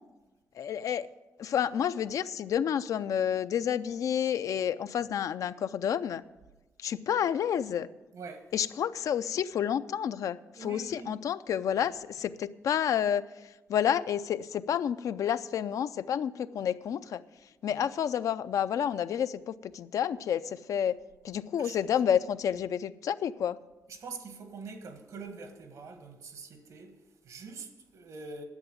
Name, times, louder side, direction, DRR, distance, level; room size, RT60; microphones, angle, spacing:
voice 1, 0.6-1.1 1.4-6.2 6.8-7.9 8.5-17.2 17.6-21.0 21.2-23.6, left 9 dB, 75° left, 0.4 m, -30 dB
voice 2, 8.1-8.5 10.6-11.1 17.6-17.8 20.1-20.2 21.6-21.8 23.9-28.4, right 4 dB, 75° right, 1.7 m, -44 dB
10.5 x 7.8 x 9.1 m
wide cardioid pair, 130°, 6 cm